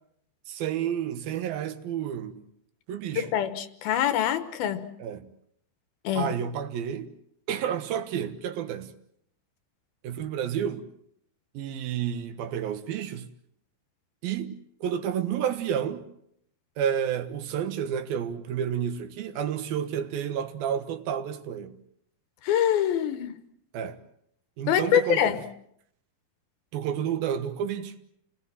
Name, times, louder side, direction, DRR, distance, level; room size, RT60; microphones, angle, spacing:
voice 1, 0.5-2.4 2.9-3.3 5.0-5.3 6.1-7.1 7.5-8.9 10.0-10.9 11.5-13.3 14.2-16.0 16.8-21.8 23.7-24.0 24.6-25.4 26.7-27.9, right 9 dB, 75° right, 3.1 m, -30 dB
voice 2, 3.2-4.9 6.0-6.3 22.4-23.3 24.7-25.4, left 10 dB, 75° left, 3.0 m, -25 dB
29.5 x 19.0 x 7.5 m
omnidirectional pair, 4.4 m